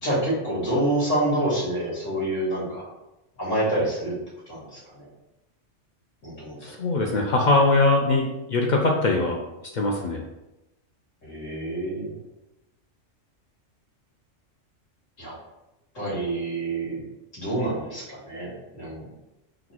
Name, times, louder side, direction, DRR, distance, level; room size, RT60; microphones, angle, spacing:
voice 1, 0.0-2.9 3.4-4.1 4.5-5.0 6.2-6.7 11.2-12.1 15.2-15.3 15.9-17.0 17.3-19.0, right 1 dB, 85° left, -6 dB, 2.1 m, -27 dB
voice 2, 6.6-9.4 9.7-10.2, left 2 dB, 65° left, 1 dB, 0.4 m, -21 dB
4.1 x 2.2 x 4.3 m, 0.96 s
omnidirectional pair, 1.3 m